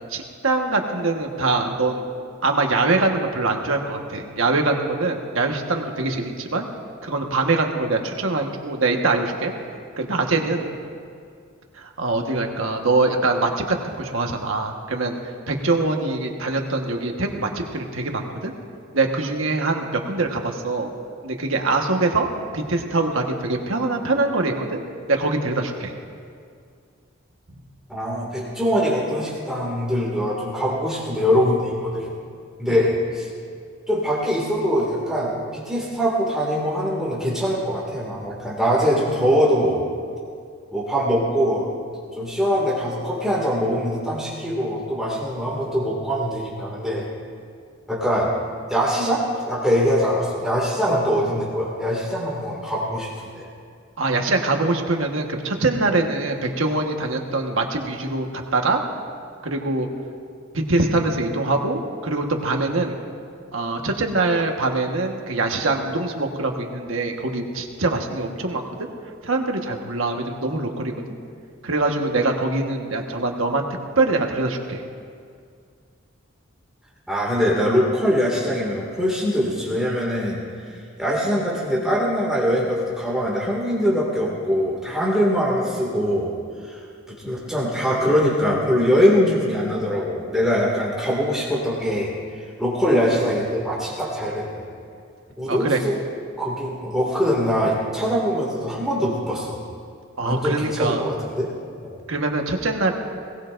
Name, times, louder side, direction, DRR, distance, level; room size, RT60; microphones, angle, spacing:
voice 1, 0.1-2.1 2.4-6.7 7.0-9.5 10.0-10.7 11.7-15.2 15.5-18.5 18.9-20.9 21.2-22.3 22.5-24.8 25.1-25.9 32.7-32.8 54.0-58.8 59.4-59.9 60.5-63.0 63.5-68.9 69.2-70.9 71.6-73.6 74.0-74.8 95.5-95.8 100.2-101.0 102.1-102.9, right 3 dB, 75° right, 3 dB, 1.4 m, -23 dB
voice 2, 27.9-32.1 32.6-33.3 33.9-39.9 40.7-41.7 42.1-47.1 47.9-48.3 48.7-53.1 53.3-53.4 77.1-80.7 81.0-86.3 86.6-92.1 92.6-94.6 95.4-96.0 96.4-99.6 100.2-101.5 101.9-102.0, equal, 5° right, -5 dB, 2.2 m, -22 dB
21.5 x 18.5 x 2.6 m, 2.3 s
head